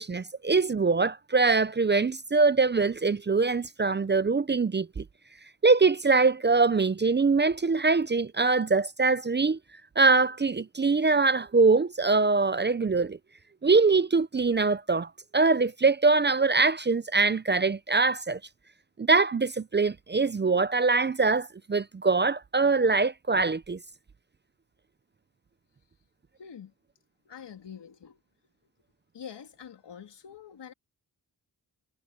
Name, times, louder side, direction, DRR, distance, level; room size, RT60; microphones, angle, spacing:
voice 1, 0.0-5.0 5.6-9.6 10.0-13.2 13.6-18.4 19.0-23.8, right 4 dB, 25° right, 0.5 m, -23 dB
voice 2, 26.4-26.7 27.2-28.2 29.1-30.7, left 8 dB, 80° left, 3.2 m, -45 dB
cardioid pair, 70°, 42 cm